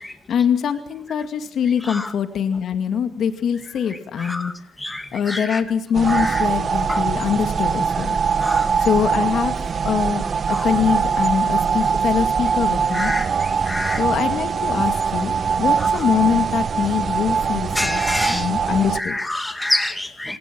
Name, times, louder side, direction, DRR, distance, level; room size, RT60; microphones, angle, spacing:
voice 1, 0.3-4.5 5.1-8.2 8.8-9.6 9.9-10.2 10.5-13.1 14.0-15.3 15.6-18.0 18.3-19.2, left 8 dB, 65° left, 8 dB, 2.1 m, -23 dB
voice 2, 4.2-4.5 4.8-5.6 6.1-6.4 6.9-7.0 8.4-8.6 10.5-10.6 12.9-13.3 13.7-14.0 17.8-18.5 19.0-20.4, left 1 dB, 10° left, 7 dB, 2.3 m, -26 dB
sound 1, 5.9-19.0, right 6 dB, 45° right, 1.0 m, -22 dB
28.0 x 17.5 x 6.1 m, 0.67 s
cardioid pair, 90°, 0 cm